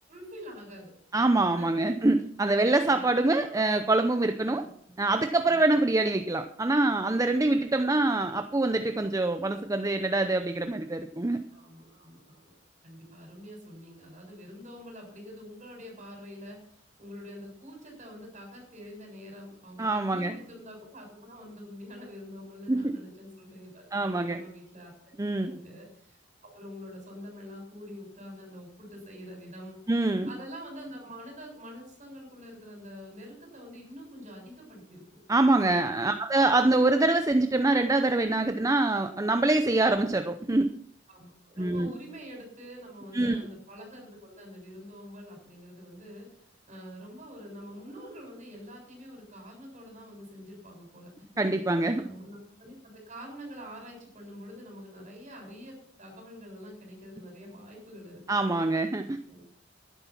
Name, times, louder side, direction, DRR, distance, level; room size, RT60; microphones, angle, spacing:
voice 1, 0.1-0.9 1.6-1.8 2.8-3.6 4.4-4.9 5.5-5.6 11.5-12.5 12.8-24.9 25.4-26.2 26.4-29.8 30.2-35.0 35.5-36.1 41.1-46.3 46.7-51.6 52.0-58.4 59.3-59.4, equal, 40° right, 1 dB, 7.1 m, -46 dB
voice 2, 1.1-4.6 5.0-11.4 19.8-20.3 22.7-22.9 23.9-24.4 25.2-25.5 29.9-30.3 35.3-40.7 41.6-41.9 43.1-43.4 51.4-52.0 58.3-59.2, right 2 dB, 15° right, 8 dB, 0.6 m, -25 dB
12.0 x 11.0 x 6.0 m, 0.62 s
head